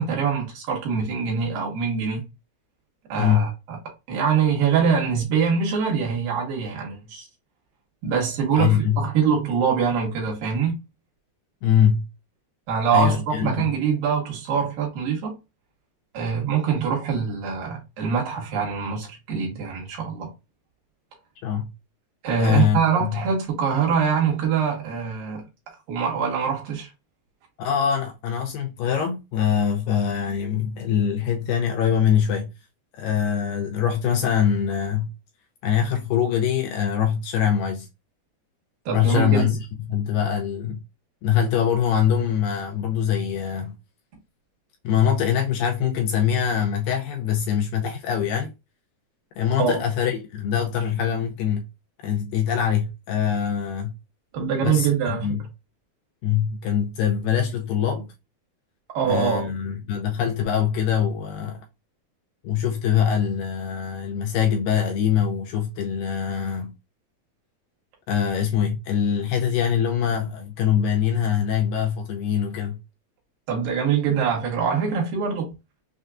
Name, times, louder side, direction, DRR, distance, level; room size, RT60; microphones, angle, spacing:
voice 1, 0.0-2.2 3.1-3.8 4.1-7.3 8.0-10.8 12.7-15.3 16.1-20.3 22.2-25.4 25.9-26.9 38.9-39.5 49.6-49.8 54.3-55.3 58.9-59.5 73.5-75.5, right 6 dB, 70° right, 2.9 m, -24 dB
voice 2, 3.2-3.5 8.5-9.1 11.6-12.1 12.9-13.7 21.4-21.7 22.4-23.2 27.6-32.5 33.0-35.1 35.6-37.9 38.9-39.6 39.9-40.8 41.2-43.8 44.8-48.5 49.4-51.7 52.0-53.9 54.6-55.4 56.2-58.1 59.1-61.6 62.4-66.7 68.1-72.8, left 8 dB, 80° left, 2.0 m, -23 dB
6.3 x 2.2 x 2.4 m
omnidirectional pair, 4.3 m